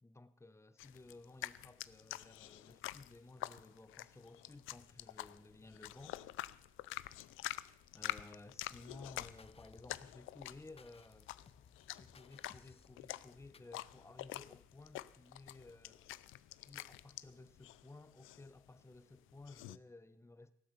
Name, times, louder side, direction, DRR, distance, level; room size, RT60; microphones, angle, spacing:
voice 1, 0.0-6.2 7.9-11.3 11.9-16.0 16.7-20.5, left 2 dB, 15° left, 1.0 m, -56 dB
sound 1, 0.8-19.8, left 16 dB, 90° left, 0.5 m, -48 dB
sound 2, 4.4-17.7, left 4 dB, 70° left, 2.5 m, -72 dB
sound 3, 8.7-13.8, left 6 dB, 30° left, 0.6 m, -63 dB
17.5 x 7.8 x 6.8 m
cardioid pair, 90°, 20 cm